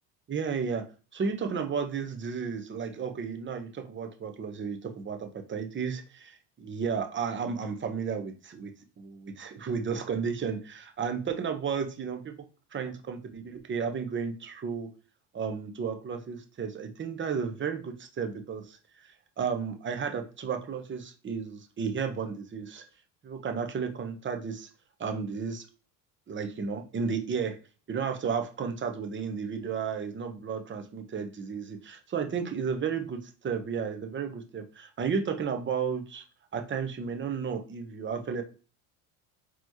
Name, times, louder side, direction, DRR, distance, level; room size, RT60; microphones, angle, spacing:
voice 1, 0.3-0.9 1.1-12.5 12.7-14.9 15.3-18.8 19.0-22.8 23.2-24.7 25.0-25.7 26.3-27.6 27.9-36.2 36.5-38.4, right 6 dB, 25° right, 6 dB, 0.8 m, -33 dB
4.2 x 3.0 x 2.9 m, 0.35 s
supercardioid pair, 85°, 43 cm